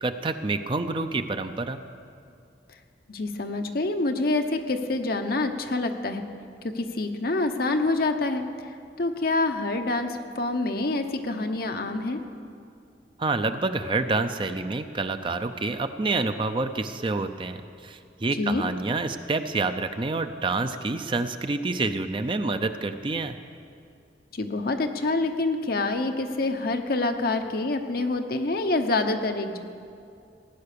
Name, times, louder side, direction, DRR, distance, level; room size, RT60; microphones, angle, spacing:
voice 1, 0.0-1.8 13.2-23.4, right 3 dB, 30° right, 9 dB, 0.5 m, -28 dB
voice 2, 3.1-6.2 6.6-8.4 9.0-12.2 18.4-18.6 24.3-29.6, left 2 dB, 55° left, 5 dB, 0.9 m, -26 dB
17.0 x 9.6 x 6.8 m, 2.4 s
head